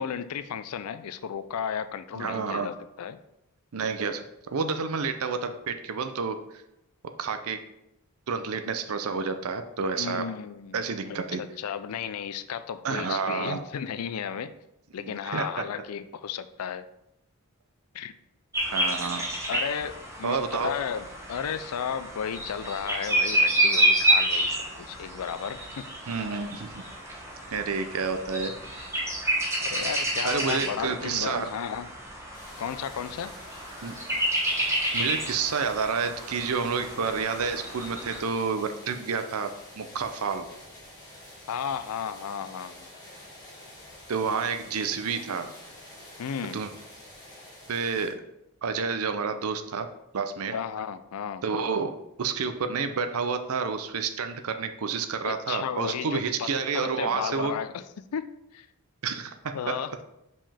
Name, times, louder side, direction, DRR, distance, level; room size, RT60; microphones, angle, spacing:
voice 1, 0.0-3.2 10.0-14.5 14.9-16.9 17.9-18.1 19.5-25.9 29.6-31.9 32.6-33.3 41.5-42.9 46.2-46.6 50.5-51.4 55.2-57.8 58.1-58.7 59.5-59.9, left 7 dB, 85° left, 13 dB, 0.4 m, -34 dB
voice 2, 2.2-2.7 3.7-4.2 4.5-6.4 7.2-7.6 8.3-10.2 10.7-11.4 12.8-13.6 15.0-15.6 18.7-19.2 20.2-20.7 26.1-26.8 27.5-28.5 30.2-31.5 33.8-33.9 34.9-40.5 44.1-45.5 46.5-46.7 47.7-48.2 48.6-49.9 50.1-50.5 51.4-57.5 59.0-59.6, right 5 dB, 80° right, 8 dB, 0.5 m, -29 dB
sound 1, 18.5-38.2, right 1 dB, 15° right, 1.0 m, -29 dB
sound 2, 32.3-48.1, left 1 dB, 20° left, 2.4 m, -48 dB
5.4 x 5.3 x 3.4 m, 0.83 s
head